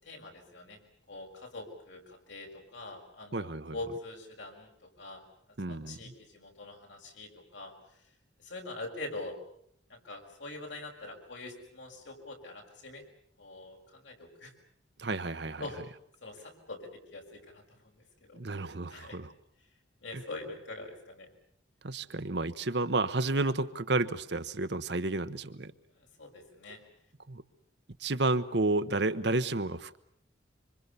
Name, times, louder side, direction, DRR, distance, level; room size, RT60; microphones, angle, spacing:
voice 1, 0.0-0.8 1.1-5.2 5.7-7.7 8.4-9.4 9.9-13.0 13.4-14.5 15.6-15.8 16.2-18.4 18.7-19.2 20.0-21.3 25.9-26.8, left 2 dB, 75° left, 2 dB, 6.0 m, -44 dB
voice 2, 3.3-3.7 5.6-6.1 15.0-15.6 18.3-19.3 20.1-20.2 21.8-25.7 27.3-27.4 28.0-30.0, right 2 dB, 60° right, 11 dB, 1.1 m, -31 dB
25.5 x 25.5 x 6.8 m, 0.68 s
head